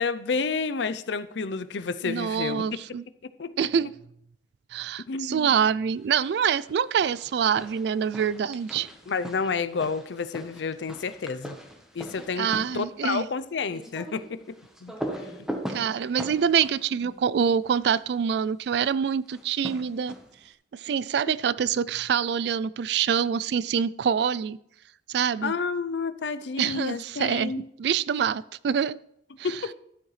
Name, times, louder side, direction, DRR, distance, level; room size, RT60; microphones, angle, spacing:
voice 1, 0.0-2.6 3.4-3.5 5.1-5.5 9.1-11.6 11.9-12.5 12.7-14.6 14.8-14.9 25.4-27.7 29.4-29.7, left 4 dB, 75° left, 13 dB, 0.5 m, -30 dB
voice 2, 2.0-3.0 3.6-3.9 4.7-8.9 12.3-13.3 15.7-20.2 20.7-24.6 25.1-25.5 26.6-27.5 27.8-29.0 29.4-29.6, right 7 dB, 65° right, 19 dB, 0.3 m, -25 dB
sound 1, 6.2-6.7 7.0-18.0 19.3-20.5, equal, 5° right, 1.1 m, -40 dB
12.5 x 8.6 x 3.2 m, 0.74 s
head